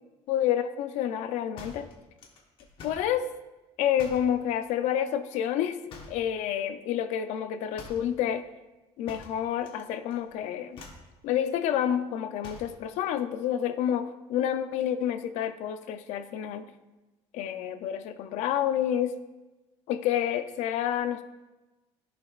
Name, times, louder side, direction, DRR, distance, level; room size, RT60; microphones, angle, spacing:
voice 1, 0.3-1.9 2.8-3.3 3.8-5.8 6.1-8.5 9.0-10.8 11.2-16.7 17.3-19.2 19.9-21.2, left 10 dB, 80° left, 10 dB, 0.5 m, -29 dB
sound 1, 1.6-3.1 4.0-4.4 5.9-6.3 7.8-8.1 9.1-9.8 10.1-10.4 10.7-11.1 12.4-12.8, left 3 dB, 45° left, 1.1 m, -46 dB
15.0 x 5.2 x 2.4 m, 1.1 s
cardioid pair, 170°, 12 cm